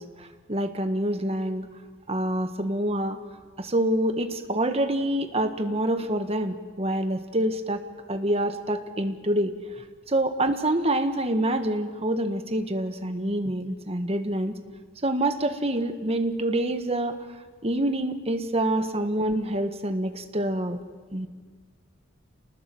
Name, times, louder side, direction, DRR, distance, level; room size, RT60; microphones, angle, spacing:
voice 1, 0.0-1.7 2.1-3.2 3.6-7.8 8.1-9.5 10.1-14.5 15.0-17.2 17.6-20.8 21.1-21.3, right 1 dB, 30° right, 8 dB, 1.5 m, -26 dB
28.0 x 19.5 x 7.8 m, 1.5 s
head